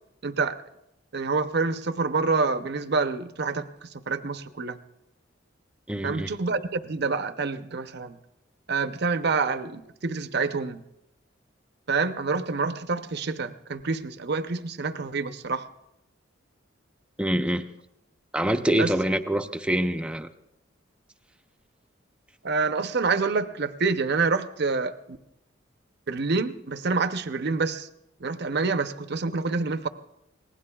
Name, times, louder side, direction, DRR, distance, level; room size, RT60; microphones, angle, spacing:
voice 1, 0.2-0.6 1.1-4.8 6.0-8.2 8.7-10.8 11.9-15.7 18.7-18.9 22.4-25.2 26.1-27.9 28.2-29.9, right 4 dB, 55° right, 11 dB, 0.7 m, -27 dB
voice 2, 5.9-6.3 17.2-17.6 18.3-20.3, right 1 dB, 5° right, 8 dB, 0.6 m, -25 dB
25.5 x 19.0 x 2.3 m, 0.84 s
head